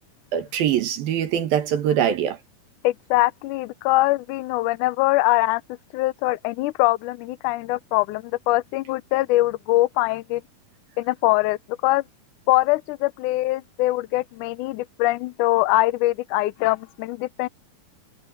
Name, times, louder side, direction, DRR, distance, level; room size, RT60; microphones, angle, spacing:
voice 1, 0.3-2.4, right 9 dB, 75° right, 3.4 m, -23 dB
voice 2, 2.8-5.6 5.9-10.4 11.0-12.0 12.5-17.5, left 18 dB, 85° left, 1.8 m, -22 dB
omnidirectional pair, 4.3 m